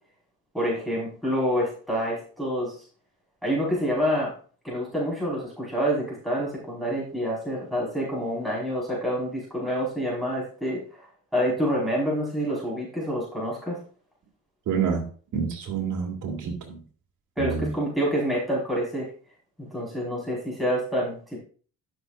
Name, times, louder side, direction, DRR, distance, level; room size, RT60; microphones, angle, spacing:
voice 1, 0.5-2.7 3.4-4.3 4.6-11.1 11.3-13.8 17.4-19.1 19.6-21.4, equal, ahead, -6 dB, 5.3 m, -27 dB
voice 2, 14.7-15.0 15.3-16.8 17.4-17.7, right 6 dB, 65° right, -1 dB, 2.9 m, -28 dB
13.5 x 6.6 x 2.6 m, 0.42 s
cardioid pair, 100°, 33 cm